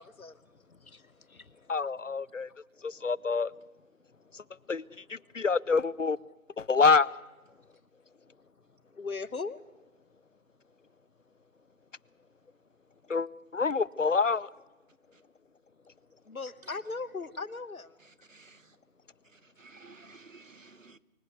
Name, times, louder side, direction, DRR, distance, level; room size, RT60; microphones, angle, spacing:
voice 1, 0.0-1.7 2.3-2.6 3.0-3.1 4.1-4.7 5.2-5.4 7.5-7.8 8.2-9.6 16.2-18.0, left 4 dB, 85° left, 1.3 m, -41 dB
voice 2, 1.7-2.5 2.8-3.5 4.3-4.4 4.7-4.8 5.1-6.2 6.6-7.1 13.1-14.5, left 4 dB, 65° left, 0.6 m, -26 dB
voice 3, 18.0-18.8 19.2-21.0, right 3 dB, 65° right, 1.1 m, -54 dB
24.5 x 14.5 x 8.1 m
figure-of-eight pair, 175°, 41 cm